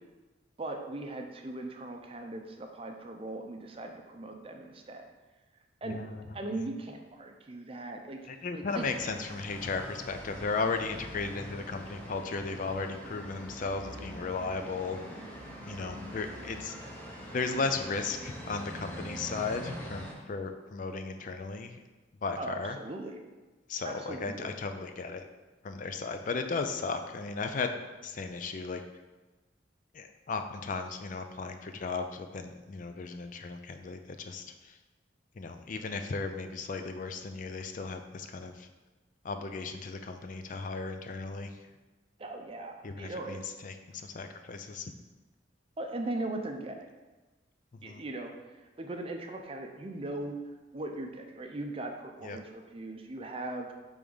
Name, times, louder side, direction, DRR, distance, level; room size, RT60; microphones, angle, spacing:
voice 1, 0.6-5.1 5.8-6.0 6.3-8.2 8.5-9.1 22.4-23.2 23.8-24.5 42.2-43.4 45.8-46.9 47.8-48.3 48.8-50.4 50.7-53.7, right 2 dB, 30° right, 3 dB, 0.5 m, -39 dB
voice 2, 5.9-6.3 6.6-6.7 8.3-15.0 15.7-16.7 17.3-21.8 22.2-22.8 23.7-25.3 25.6-27.7 28.0-28.8 29.9-34.8 35.4-38.7 39.2-41.5 42.8-44.9 47.8-48.0 52.2-52.4, left 4 dB, 45° left, 7 dB, 0.4 m, -35 dB
sound 1, 8.7-20.1, equal, 10° left, 1.0 m, -44 dB
5.0 x 3.5 x 5.3 m, 1.2 s
head